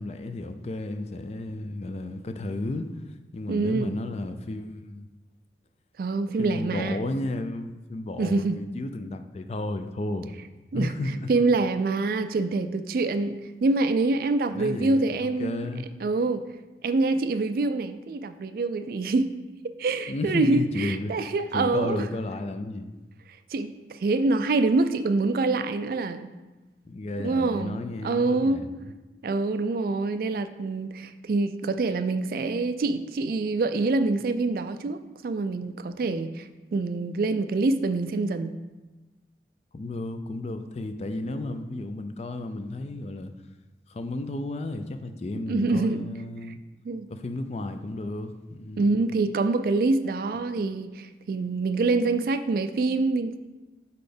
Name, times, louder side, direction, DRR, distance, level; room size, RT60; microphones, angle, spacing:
voice 1, 0.0-3.0 3.3-5.1 6.4-10.3 10.7-11.3 14.5-15.9 20.1-21.3 21.5-22.9 26.8-28.7 39.7-43.3 43.9-46.6 47.1-49.0, left 2 dB, 35° left, 8 dB, 0.3 m, -33 dB
voice 2, 3.5-4.0 6.0-7.0 8.2-8.6 10.7-10.9 11.3-15.7 16.0-16.4 16.8-19.3 19.8-22.1 23.5-26.3 27.2-28.6 29.2-38.6 45.5-46.0 46.8-47.1 48.8-53.4, right 3 dB, 55° right, 11 dB, 0.3 m, -25 dB
5.5 x 4.2 x 5.0 m, 1.2 s
head